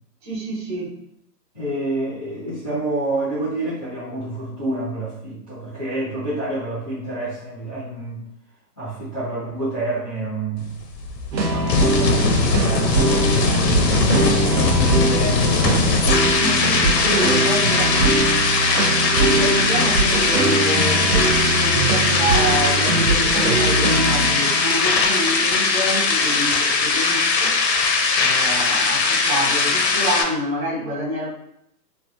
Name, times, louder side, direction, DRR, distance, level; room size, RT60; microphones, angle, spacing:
voice 1, 0.2-1.0 14.1-14.8 16.4-27.6 28.2-31.3, right 1 dB, 30° right, -8 dB, 1.2 m, -27 dB
voice 2, 1.5-8.2 8.8-10.8 11.4-13.7 14.5-15.9 16.4-16.7, right 2 dB, 5° right, -14 dB, 0.5 m, -28 dB
sound 1, 10.6-30.2, left 4 dB, 80° left, 0.7 m, -20 dB
sound 2, 11.3-26.6, right 2 dB, 85° right, 0.8 m, -22 dB
3.1 x 2.1 x 2.5 m, 0.74 s
hypercardioid pair, 150°, 50 cm